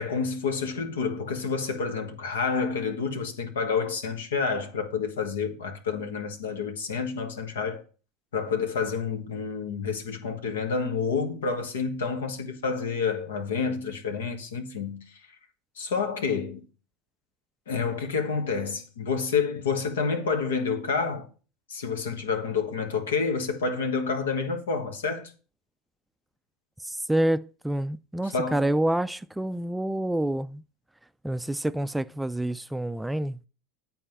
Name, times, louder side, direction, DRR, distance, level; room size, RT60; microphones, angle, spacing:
voice 1, 0.0-7.8 8.3-15.2 15.8-16.6 17.7-21.3 21.7-25.3 28.3-28.7, left 5 dB, 90° left, 1.5 m, -29 dB
voice 2, 26.8-30.6 31.2-33.4, right 1 dB, 5° right, 0.3 m, -28 dB
8.9 x 4.2 x 7.1 m
hypercardioid pair, 95°, 0 cm